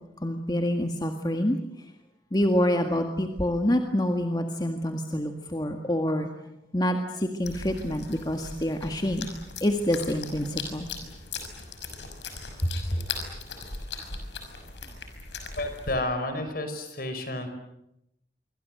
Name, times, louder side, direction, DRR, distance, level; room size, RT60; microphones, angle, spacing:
voice 1, 0.2-1.6 2.3-6.3 6.7-9.3 9.6-10.9, left 1 dB, 25° left, 4 dB, 1.8 m, -27 dB
sound 1, 7.4-16.0, left 4 dB, 85° left, 5.9 m, -39 dB
voice 2, 15.6-17.5, left 1 dB, 55° left, 8 dB, 5.4 m, -31 dB
26.5 x 25.0 x 7.9 m, 0.85 s
head